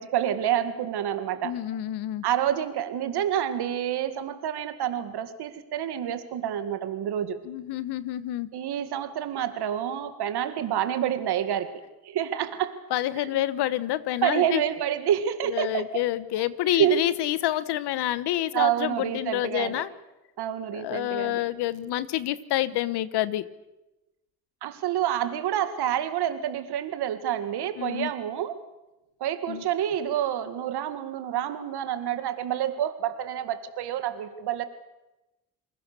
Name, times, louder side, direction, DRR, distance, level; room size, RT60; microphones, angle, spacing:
voice 1, 0.0-1.6 2.2-7.4 8.5-12.8 13.2-13.5 14.2-16.1 16.7-17.0 18.5-19.8 20.4-21.5 24.6-28.6 29.2-34.7, right 10 dB, 75° right, 10 dB, 2.1 m, -28 dB
voice 2, 1.4-2.2 7.5-8.5 12.9-14.6 15.5-19.9 20.7-23.5 27.8-28.1 29.5-29.6, left 14 dB, 80° left, 16 dB, 1.2 m, -28 dB
28.5 x 20.0 x 6.9 m, 0.98 s
supercardioid pair, 60°, 39 cm